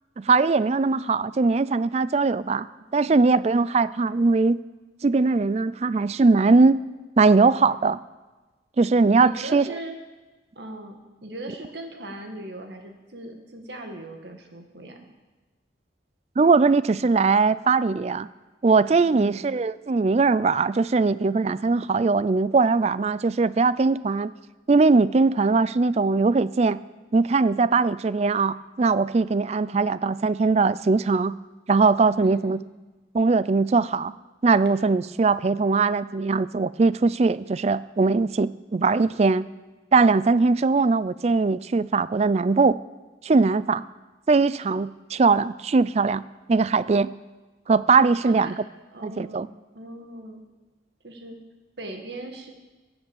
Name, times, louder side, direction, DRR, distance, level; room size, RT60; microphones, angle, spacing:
voice 1, 0.2-2.7 2.9-4.6 5.0-6.8 7.2-8.0 8.8-9.6 16.4-18.3 18.6-24.3 24.7-26.8 27.1-31.3 31.7-32.6 33.1-34.1 34.4-39.5 39.9-42.8 43.2-43.8 44.3-46.2 46.5-47.1 47.7-48.5 49.0-49.5, right 4 dB, 35° right, 17 dB, 0.3 m, -20 dB
voice 2, 9.2-10.0 10.6-15.1 19.1-19.5 29.6-29.8 32.2-32.5 48.2-48.6 48.9-49.5 49.7-50.4 51.0-51.4 51.8-52.5, right 1 dB, 65° right, 4 dB, 1.9 m, -38 dB
15.5 x 8.0 x 7.1 m, 1.2 s
head